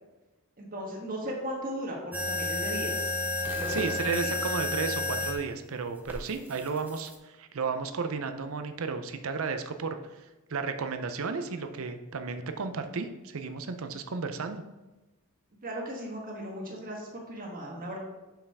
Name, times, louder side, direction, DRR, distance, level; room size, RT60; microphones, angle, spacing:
voice 1, 0.6-3.2 3.5-4.3 15.6-18.0, equal, 40° right, -1 dB, 1.4 m, -37 dB
sound 1, 2.1-5.4 6.1-7.2, left 2 dB, 10° right, 0.7 m, -31 dB
voice 2, 3.7-14.6, right 5 dB, 65° right, 8 dB, 0.6 m, -33 dB
7.0 x 5.5 x 3.5 m, 1.1 s
head